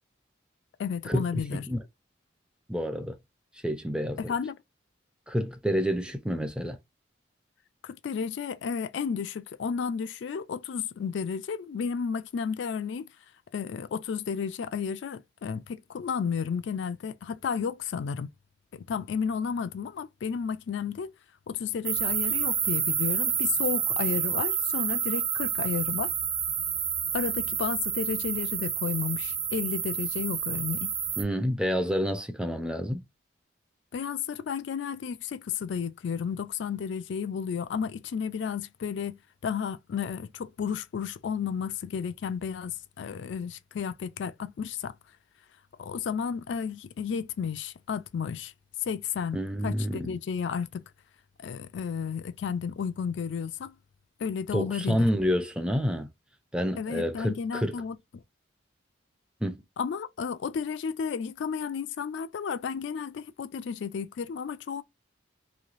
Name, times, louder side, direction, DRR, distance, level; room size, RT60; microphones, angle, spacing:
voice 1, 0.8-1.6 4.2-4.6 7.8-13.1 13.5-18.3 18.7-21.1 21.5-26.1 27.1-30.9 33.9-44.9 45.8-48.5 48.9-50.8 51.4-53.7 54.2-55.1 56.8-58.0 59.8-64.8, left 6 dB, 65° left, 0.3 m, -32 dB
voice 2, 1.5-1.8 2.7-3.2 3.6-4.3 5.3-6.8 31.2-33.0 49.3-50.2 54.5-56.1 56.5-57.8 59.4-59.6, equal, 5° right, 0.4 m, -28 dB
sound 1, 21.8-31.2, right 8 dB, 30° right, 0.8 m, -29 dB
3.2 x 2.6 x 2.4 m
head